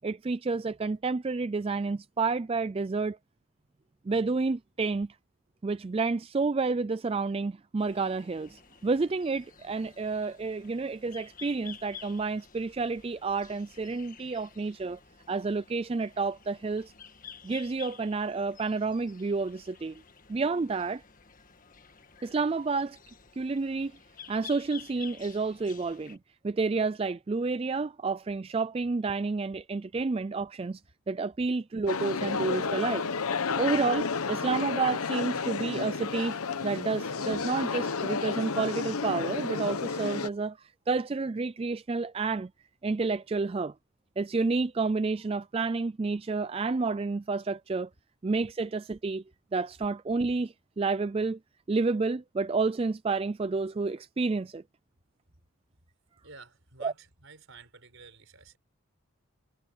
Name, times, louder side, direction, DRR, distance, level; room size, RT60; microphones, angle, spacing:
voice 1, 0.0-3.2 4.1-5.1 5.6-15.0 15.3-16.9 17.4-20.0 20.3-21.0 22.2-23.0 23.4-23.9 24.3-26.2 26.4-30.8 31.1-33.0 33.6-42.5 42.8-43.7 44.2-47.9 48.2-49.2 49.5-51.4 51.7-54.6 56.8-56.9, right 4 dB, 25° right, 0.3 m, -30 dB
sound 1, 7.8-26.2, left 7 dB, 35° left, 1.7 m, -51 dB
sound 2, 31.9-40.3, left 5 dB, 80° left, 0.9 m, -31 dB
voice 2, 56.2-58.6, right 4 dB, 65° right, 4.5 m, -52 dB
head